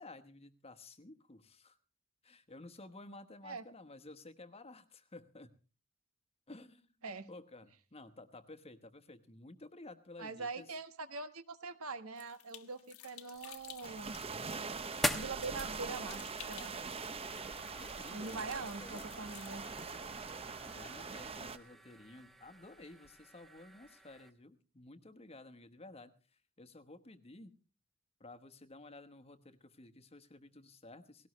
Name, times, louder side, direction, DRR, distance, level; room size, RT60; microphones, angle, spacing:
voice 1, 0.0-1.8 2.2-5.5 6.5-10.7 17.7-19.0 20.6-27.5 28.2-31.3, left 2 dB, 30° left, 10 dB, 1.1 m, -54 dB
voice 2, 10.2-14.2 15.1-16.7 18.1-19.7, right 4 dB, 80° right, 10 dB, 1.4 m, -43 dB
sound 1, 12.2-20.0, left 13 dB, 80° left, 1.3 m, -56 dB
sound 2, 13.3-24.3, left 1 dB, ahead, 1.1 m, -45 dB
sound 3, 13.8-21.6, right 4 dB, 25° right, 0.7 m, -43 dB
18.5 x 17.5 x 3.2 m, 0.35 s
head